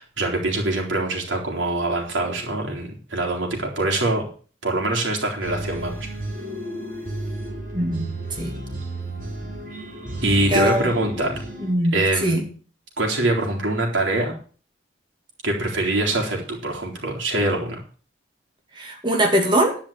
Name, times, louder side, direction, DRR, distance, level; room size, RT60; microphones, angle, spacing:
voice 1, 0.0-4.3 4.6-6.1 10.2-11.4 11.9-12.4 13.0-14.3 15.4-17.8, right 2 dB, 90° right, -1 dB, 3.9 m, -24 dB
sound 1, 5.4-11.7, right 1 dB, 45° right, 4.0 m, -33 dB
voice 2, 7.7-8.1 8.4-8.5 10.5-10.9 11.6-12.4 18.7-19.8, equal, 25° right, 0 dB, 2.4 m, -21 dB
11.0 x 5.7 x 8.8 m, 0.40 s
head